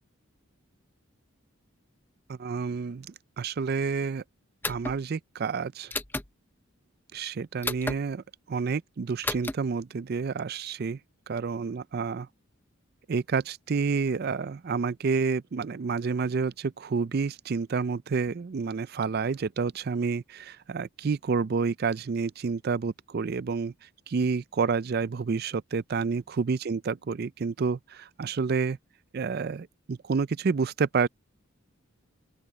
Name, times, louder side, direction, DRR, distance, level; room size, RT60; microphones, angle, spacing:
voice 1, 2.3-3.1 3.4-4.2 4.7-5.9 7.1-11.0 11.3-12.3 13.1-23.7 24.1-28.8 29.1-31.1, right 5 dB, 45° right, 0.4 m, -29 dB
sound 1, 4.6-5.0 5.9-6.3 7.6-8.0 9.2-9.5, left 2 dB, 10° left, 0.6 m, -31 dB
open air
head